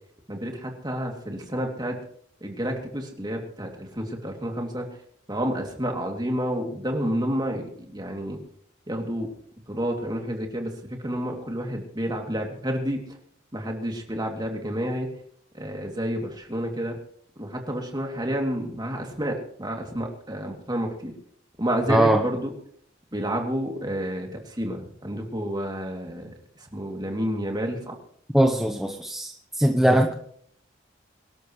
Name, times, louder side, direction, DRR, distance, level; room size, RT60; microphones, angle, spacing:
voice 1, 0.3-1.9 2.4-4.8 5.3-8.4 8.9-9.3 9.7-13.0 13.5-15.1 15.5-16.9 17.4-21.1 21.6-22.5 23.1-24.3 24.6-26.3 26.7-27.9, equal, 20° right, 2 dB, 2.8 m, -29 dB
voice 2, 21.9-22.2 28.3-30.1, right 1 dB, ahead, 3 dB, 1.0 m, -21 dB
24.0 x 12.5 x 3.2 m, 0.63 s
head